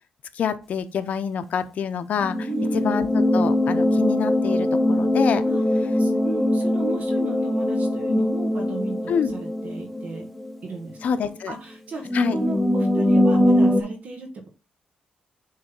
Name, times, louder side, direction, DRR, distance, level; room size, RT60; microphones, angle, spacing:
voice 1, 0.3-2.5 2.8-5.4 9.1-9.3 11.0-11.5 12.1-12.4, left 7 dB, 60° left, 10 dB, 0.7 m, -26 dB
sound 1, 2.2-10.6 10.9-11.0 12.0-13.8, left 1 dB, 5° left, 0.9 m, -22 dB
voice 2, 2.5-2.8 5.5-5.6 6.0-9.0 9.3-10.3 10.6-14.3, right 3 dB, 60° right, 2 dB, 1.4 m, -35 dB
6.7 x 3.3 x 5.4 m, 0.32 s
cardioid pair, 105°, 3 cm